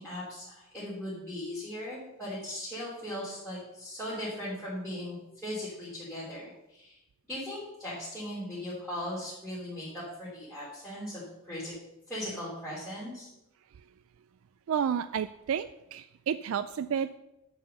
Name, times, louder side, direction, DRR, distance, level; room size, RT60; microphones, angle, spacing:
voice 1, 0.0-6.9 7.3-11.7 12.1-13.3, left 1 dB, 5° left, -11 dB, 3.3 m, -38 dB
voice 2, 14.7-16.0 16.3-17.2, right 8 dB, 70° right, 13 dB, 0.3 m, -30 dB
10.0 x 4.9 x 6.7 m, 0.90 s
head